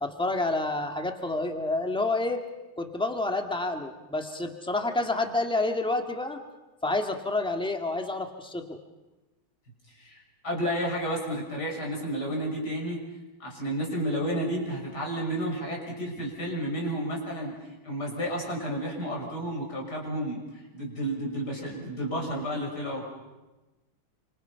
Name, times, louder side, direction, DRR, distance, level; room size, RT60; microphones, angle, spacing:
voice 1, 0.0-2.4 2.8-6.4 6.8-8.8, left 2 dB, 5° left, 5 dB, 1.6 m, -29 dB
voice 2, 9.9-13.0 13.4-17.6 17.8-20.4 20.7-23.0, equal, 55° left, -1 dB, 6.8 m, -31 dB
28.5 x 26.0 x 5.7 m, 1.1 s
omnidirectional pair, 2.2 m